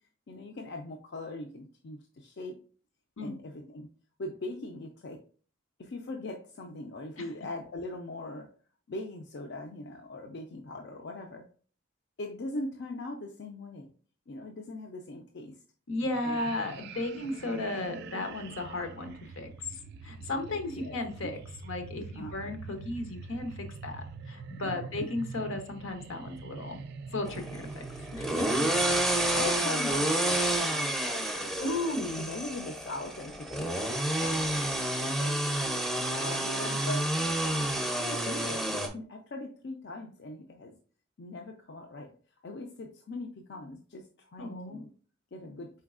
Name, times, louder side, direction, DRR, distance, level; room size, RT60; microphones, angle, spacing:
voice 1, 0.3-2.6 3.2-3.9 4.2-5.2 5.8-8.5 8.9-11.4 12.2-13.9 14.3-15.6 16.2-16.4 20.5-21.3 22.1-22.3 24.6-24.9 28.8-31.5 32.2-34.5 35.0-35.4 36.2-37.2 37.7-40.8 41.2-42.1 42.4-44.9 45.3-45.7, left 2 dB, 55° left, 3 dB, 0.4 m, -41 dB
voice 2, 15.9-19.5 20.0-21.4 21.6-26.8 27.1-27.8 28.1-28.3 28.6-28.7 31.6-32.3 44.4-44.8, left 2 dB, 75° left, 5 dB, 0.8 m, -35 dB
sound 1, 16.0-29.5, right 4 dB, 55° right, 0.4 m, -44 dB
sound 2, 27.3-38.9, right 1 dB, ahead, 0.5 m, -29 dB
4.4 x 3.9 x 2.4 m, 0.42 s
head